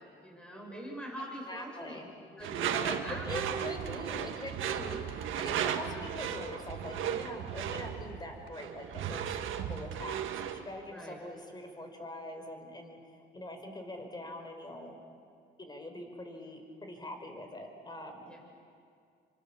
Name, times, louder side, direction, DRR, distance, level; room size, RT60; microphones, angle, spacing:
voice 1, 0.0-3.6 5.8-6.1 10.9-11.2 18.3-18.4, equal, 5° left, -1 dB, 7.1 m, -44 dB
voice 2, 1.5-2.1 2.7-14.9 15.6-18.3, left 1 dB, 20° left, 4 dB, 5.2 m, -43 dB
Door / Screech, 2.4-10.6, right 9 dB, 80° right, 1.8 m, -35 dB
29.5 x 25.0 x 7.2 m, 2.3 s
cardioid pair, 90°, 20 cm